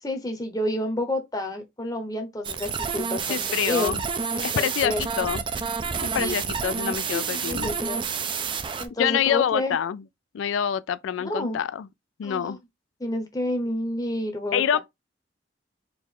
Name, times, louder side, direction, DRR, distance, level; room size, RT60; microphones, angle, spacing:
voice 1, 0.0-4.0 4.3-5.0 6.2-6.4 7.1-8.1 8.8-9.8 11.2-11.6 12.2-12.6 13.0-14.8, left 1 dB, 20° left, 0.7 m, -30 dB
sound 1, 2.4-8.9, right 6 dB, 25° right, 0.3 m, -29 dB
voice 2, 3.3-4.0 4.4-5.4 6.0-7.7 9.0-10.0 10.3-11.9 12.2-12.6 14.5-14.8, left 9 dB, 85° left, 0.3 m, -26 dB
4.5 x 2.4 x 3.6 m
head